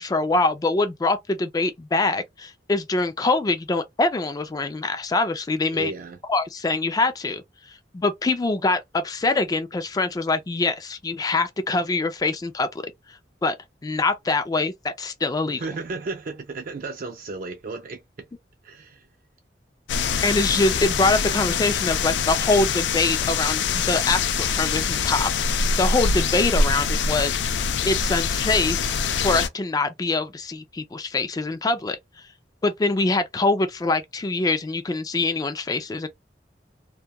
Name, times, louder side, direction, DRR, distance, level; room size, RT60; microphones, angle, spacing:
voice 1, 0.0-5.9 6.3-7.4 7.9-13.6 13.8-15.6 20.2-25.3 25.7-27.4 27.8-28.8 29.2-32.0 32.6-36.1, left 3 dB, 20° left, 0.3 m, -24 dB
voice 2, 5.7-6.2 15.5-18.0 18.6-19.1, right 3 dB, 50° right, 0.4 m, -34 dB
sound 1, 19.9-29.5, left 5 dB, 90° left, 0.4 m, -24 dB
2.2 x 2.2 x 2.8 m
head